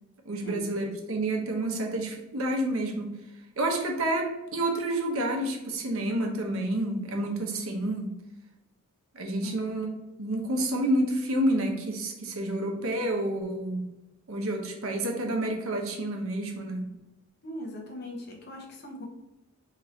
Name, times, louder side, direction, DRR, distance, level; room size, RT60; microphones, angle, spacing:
voice 1, 0.2-3.1 3.6-8.1 9.1-9.9 10.2-13.8 14.3-16.8, right 1 dB, 65° right, 2 dB, 0.7 m, -29 dB
voice 2, 17.4-19.0, left 1 dB, 50° left, -1 dB, 0.8 m, -40 dB
2.9 x 2.6 x 4.1 m, 1.0 s
head